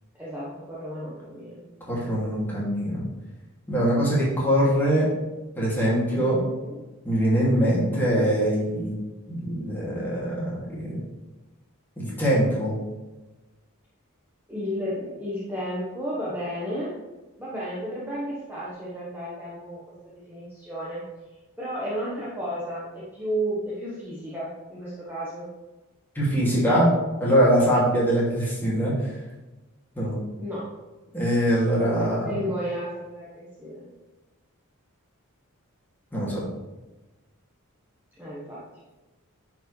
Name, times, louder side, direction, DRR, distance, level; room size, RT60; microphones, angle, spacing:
voice 1, 0.1-1.7 6.3-6.8 14.5-17.0 17.4-21.0 21.6-25.5 30.4-30.7 31.8-33.8 38.2-38.6, equal, 10° right, -8 dB, 1.2 m, -33 dB
voice 2, 1.9-3.0 3.7-5.1 5.6-6.4 7.0-8.9 9.3-11.0 12.0-12.8 26.1-26.9 27.2-29.1 30.0-30.2 31.1-32.4 36.1-36.4, equal, 10° left, -7 dB, 2.4 m, -23 dB
9.9 x 4.7 x 3.3 m, 1.1 s
head